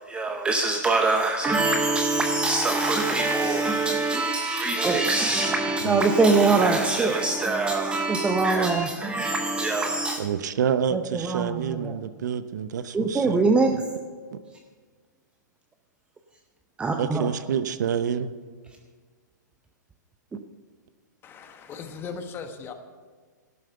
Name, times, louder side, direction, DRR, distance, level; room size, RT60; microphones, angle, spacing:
voice 1, 0.1-10.2 10.9-12.0 12.9-13.8 16.8-17.3, right 3 dB, 10° right, 0.7 m, -23 dB
voice 2, 10.2-13.8 14.3-14.4 17.0-18.3, right 8 dB, 65° right, 0.8 m, -28 dB
voice 3, 21.2-22.7, left 5 dB, 20° left, 1.3 m, -38 dB
12.0 x 9.3 x 6.8 m
hypercardioid pair, 135°, 10 cm